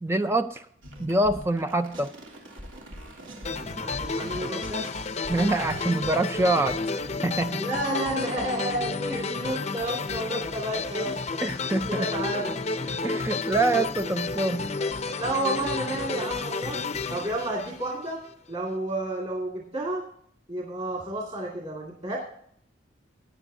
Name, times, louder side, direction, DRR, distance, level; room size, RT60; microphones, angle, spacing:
voice 1, 0.0-0.7 1.0-2.1 5.3-6.9 7.2-7.7 9.1-9.2 11.4-12.1 13.0-14.7, right 2 dB, 15° right, 9 dB, 0.3 m, -25 dB
sound 1, 0.8-5.8, right 1 dB, 85° right, 3.0 m, -42 dB
sound 2, 3.4-18.3, left 4 dB, 35° left, 0.5 m, -31 dB
voice 2, 3.8-4.9 7.6-11.4 11.9-12.6 15.2-16.8 17.1-18.2 18.5-20.0 20.5-22.2, right 1 dB, 30° right, -2 dB, 2.0 m, -31 dB
17.0 x 9.6 x 2.7 m, 0.64 s
head